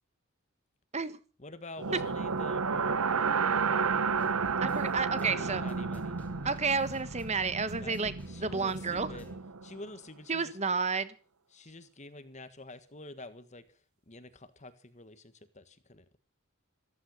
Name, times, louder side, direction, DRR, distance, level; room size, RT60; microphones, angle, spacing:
voice 1, 1.4-4.3 5.2-6.2 7.7-9.3 9.6-10.6 11.5-13.6 14.1-16.2, left 2 dB, 35° left, 11 dB, 1.6 m, -48 dB
sound 1, 1.8-9.8, right 5 dB, 90° right, 0.9 m, -32 dB
sound 2, 4.1-9.4, equal, 5° left, 3.0 m, -52 dB
voice 2, 4.6-5.6 6.4-8.1 8.4-9.1 10.3-11.1, right 4 dB, 30° right, 14 dB, 1.3 m, -31 dB
15.0 x 14.5 x 6.5 m, 0.39 s
head